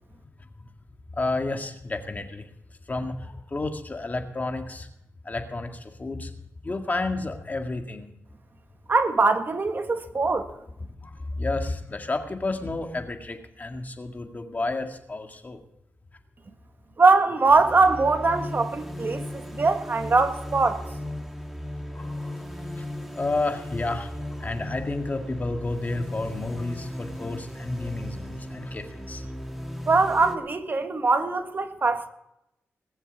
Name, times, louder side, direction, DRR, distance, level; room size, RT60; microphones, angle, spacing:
voice 1, 1.1-2.4 2.9-4.9 5.2-6.3 6.6-8.1 11.0-15.6 19.3-19.4 21.9-22.9 23.2-29.2, left 2 dB, 35° left, 1.9 m, -31 dB
voice 2, 8.9-10.5 17.0-20.8 29.9-32.1, right 3 dB, 45° right, 1.5 m, -22 dB
sound 1, 17.5-30.4, left 1 dB, 5° right, 2.1 m, -36 dB
20.0 x 7.2 x 6.9 m
cardioid pair, 80°, 5 cm